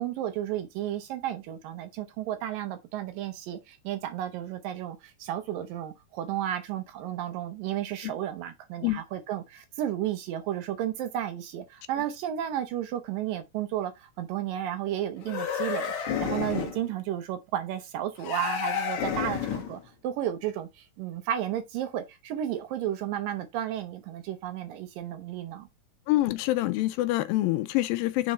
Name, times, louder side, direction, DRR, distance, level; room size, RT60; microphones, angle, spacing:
voice 1, 0.0-25.7, right 11 dB, 75° right, 2.7 m, -33 dB
sound 1, 15.2-16.8 18.2-19.8, left 8 dB, 65° left, 2.3 m, -30 dB
voice 2, 26.1-28.3, left 16 dB, 80° left, 2.3 m, -26 dB
7.5 x 3.8 x 4.0 m
omnidirectional pair, 4.1 m